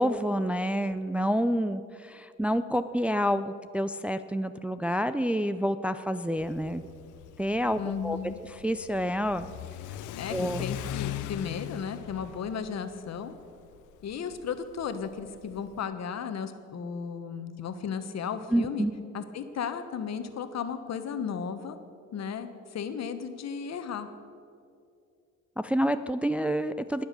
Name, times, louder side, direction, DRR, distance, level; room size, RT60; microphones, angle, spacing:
voice 1, 0.0-6.9 7.4-8.2 8.6-9.5 10.3-10.7 18.5-18.9 25.6-27.0, equal, 5° right, 10 dB, 0.4 m, -28 dB
Car / Accelerating revving vroom, 6.4-15.8, left 12 dB, 85° left, 0.6 m, -40 dB
voice 2, 7.8-8.4 10.2-13.3 14.0-18.9 19.1-21.8 22.1-24.1, left 7 dB, 60° left, 9 dB, 1.2 m, -35 dB
20.0 x 7.2 x 6.8 m, 2.5 s
cardioid pair, 90°, 30 cm